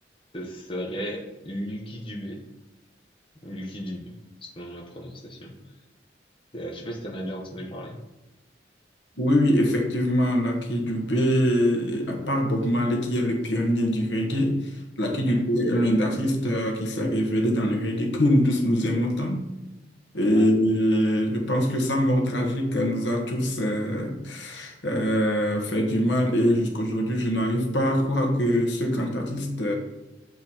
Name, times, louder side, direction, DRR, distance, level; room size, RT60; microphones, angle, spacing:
voice 1, 0.3-2.4 3.4-4.1 4.4-5.5 6.5-8.0 15.3-15.4 20.3-20.5, equal, 30° left, -1 dB, 1.1 m, -35 dB
voice 2, 9.2-14.6 15.0-19.4 20.1-29.7, equal, 70° left, 2 dB, 1.3 m, -23 dB
7.9 x 4.2 x 4.3 m, 1.0 s
head